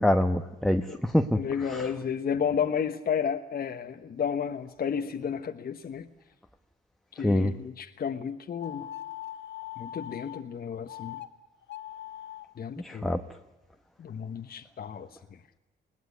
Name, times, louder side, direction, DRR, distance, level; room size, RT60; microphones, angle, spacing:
voice 1, 0.0-1.9 7.2-7.5 12.8-13.2, left 1 dB, ahead, 1.1 m, -26 dB
voice 2, 1.4-6.1 7.1-8.9 9.8-11.2 12.6-13.1 14.0-15.1, left 7 dB, 50° left, 1.2 m, -32 dB
sound 1, 8.6-10.4 10.9-11.3 11.6-12.5, left 12 dB, 65° left, 1.6 m, -40 dB
21.0 x 18.5 x 9.6 m
cardioid pair, 90°, 20 cm